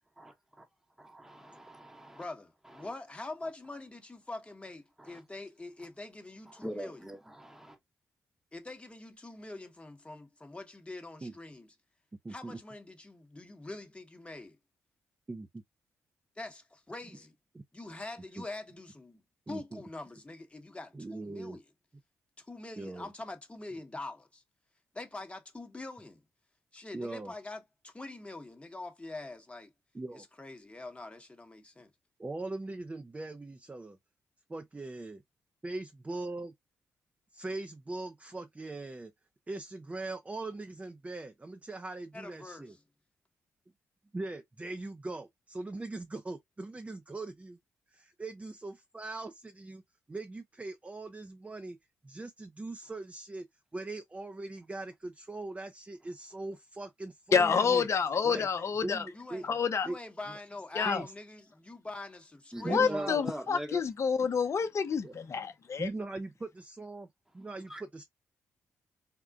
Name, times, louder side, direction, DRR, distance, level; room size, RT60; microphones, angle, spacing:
voice 1, 1.1-2.2 2.7-2.9 5.0-5.2 6.5-7.8 62.5-63.8 67.7-67.8, right 1 dB, 5° right, 0.9 m, -41 dB
voice 2, 2.2-7.0 8.5-11.7 12.3-14.6 16.4-17.3 17.7-19.2 19.5-21.6 22.4-24.4 24.9-26.2 26.7-29.7 30.1-31.9 42.1-42.8 59.1-59.5 59.8-63.1, left 2 dB, 20° left, 1.0 m, -44 dB
voice 3, 12.2-12.6 15.3-15.5 17.5-17.6 18.4-18.5 19.5-19.8 20.9-21.6 22.8-23.1 26.9-27.3 29.9-30.3 32.2-34.0 34.5-35.2 35.6-36.5 37.3-39.1 39.5-42.8 44.1-47.6 47.9-49.8 50.1-51.8 52.0-53.5 53.7-57.9 58.2-58.5 58.8-59.4 59.9-60.0 60.3-60.4 60.8-61.1 62.6-63.2 65.0-65.1 65.8-67.1 67.3-68.0, right 2 dB, 25° right, 0.5 m, -40 dB
voice 4, 57.3-59.0 59.4-59.9 60.7-61.0 62.7-65.9, left 6 dB, 50° left, 0.6 m, -28 dB
3.7 x 2.1 x 2.3 m
supercardioid pair, 50°, 6 cm